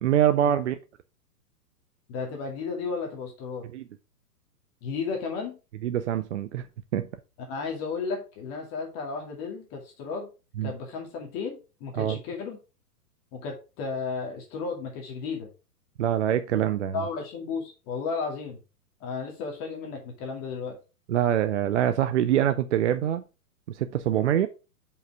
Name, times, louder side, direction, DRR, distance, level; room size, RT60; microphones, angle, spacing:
voice 1, 0.0-0.8 3.7-3.8 5.8-6.7 6.9-7.1 10.6-10.7 12.0-12.2 16.0-16.9 21.1-23.2 23.7-24.5, right 10 dB, 50° right, 0.6 m, -24 dB
voice 2, 2.1-3.7 4.8-5.6 7.4-10.3 10.6-12.6 13.3-15.5 16.9-18.6 19.0-20.8, left 4 dB, 30° left, 2.2 m, -33 dB
6.5 x 5.5 x 4.7 m
figure-of-eight pair, 115°, 47 cm